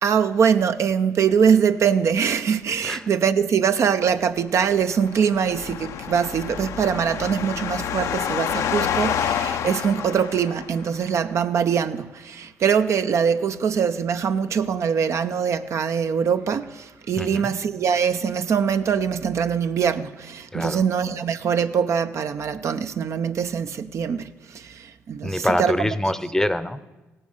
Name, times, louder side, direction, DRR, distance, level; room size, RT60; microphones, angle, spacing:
voice 1, 0.0-25.7, right 7 dB, 65° right, 0.6 m, -23 dB
sound 1, 4.7-11.0, left 9 dB, 80° left, 0.6 m, -28 dB
voice 2, 17.2-17.5 20.5-20.8 25.2-26.8, left 1 dB, 10° left, 0.7 m, -25 dB
16.0 x 8.8 x 6.6 m
cardioid pair, 70°, 5 cm